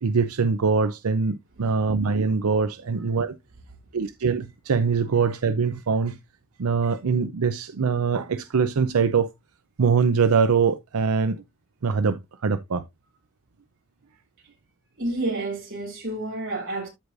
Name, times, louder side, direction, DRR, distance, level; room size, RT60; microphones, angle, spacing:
voice 1, 0.0-3.3 3.9-6.2 6.6-9.3 9.8-11.4 11.8-12.8, right 5 dB, 90° right, 0.6 m, -23 dB
voice 2, 15.0-16.9, right 2 dB, 60° right, 5.4 m, -29 dB
13.0 x 4.8 x 2.5 m
head